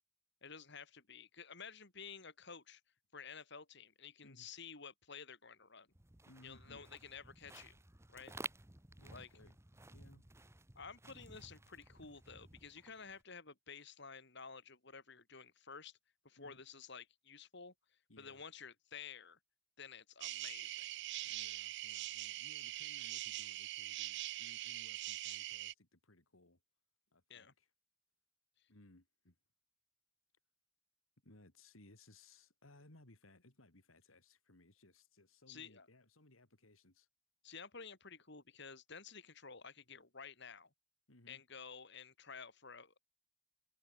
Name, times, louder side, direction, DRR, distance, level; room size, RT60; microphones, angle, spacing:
voice 1, 0.4-2.8 3.1-5.9 6.4-7.8 8.1-8.3 9.1-9.3 10.8-16.0 16.2-17.7 18.2-19.4 19.8-20.9 27.3-27.5 35.5-35.9 37.4-40.7 41.3-43.0, left 6 dB, 60° left, 3.7 m, -52 dB
sound 1, 5.9-13.2, right 2 dB, 15° right, 1.3 m, -54 dB
voice 2, 6.3-6.9 8.3-8.5 9.0-9.6 9.9-10.3 16.4-16.6 18.1-18.4 21.2-26.6 27.1-27.7 28.7-29.3 31.2-37.1 41.1-41.4, left 2 dB, 85° left, 3.3 m, -63 dB
sound 2, 20.2-25.7, right 16 dB, 60° right, 0.4 m, -43 dB
head